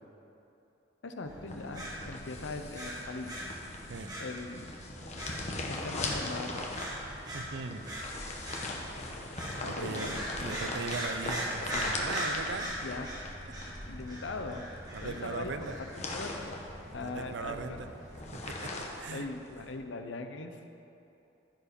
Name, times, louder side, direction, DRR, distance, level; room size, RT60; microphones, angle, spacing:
voice 1, 1.0-3.5 4.2-4.7 5.7-6.8 9.6-10.2 12.8-13.1 13.9-14.6 15.0-16.7 16.9-17.9 19.1-20.6, left 3 dB, 80° left, 6 dB, 0.7 m, -40 dB
sound 1, 1.2-18.6, equal, 20° right, 1.9 m, -41 dB
sound 2, 1.5-19.8, left 2 dB, 35° left, 1.1 m, -41 dB
voice 2, 7.3-7.9 9.4-10.1 10.4-12.9 14.9-15.8 17.0-17.9 18.3-19.3, right 4 dB, 70° right, 9 dB, 0.6 m, -39 dB
14.5 x 4.9 x 5.1 m, 2.9 s
head